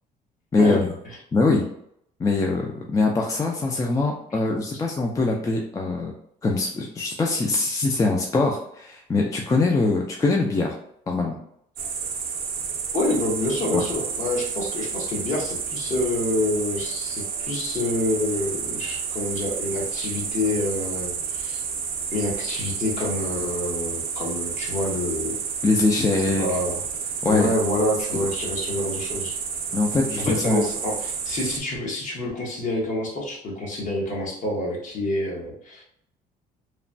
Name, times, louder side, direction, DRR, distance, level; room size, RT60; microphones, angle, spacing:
voice 1, 0.5-0.9 1.3-1.6 2.2-6.1 6.4-10.7 11.1-11.4 13.7-13.8 25.6-26.4 27.2-27.5 29.7-30.6, left 3 dB, 20° left, 0 dB, 0.4 m, -22 dB
sound 1, 11.8-31.6, right 6 dB, 60° right, 0.5 m, -30 dB
voice 2, 12.9-21.6 22.1-25.4 26.4-26.8 27.3-29.4 30.2-35.8, left 1 dB, 50° left, -2 dB, 1.1 m, -27 dB
3.1 x 2.1 x 2.6 m, 0.71 s
cardioid pair, 110°, 17 cm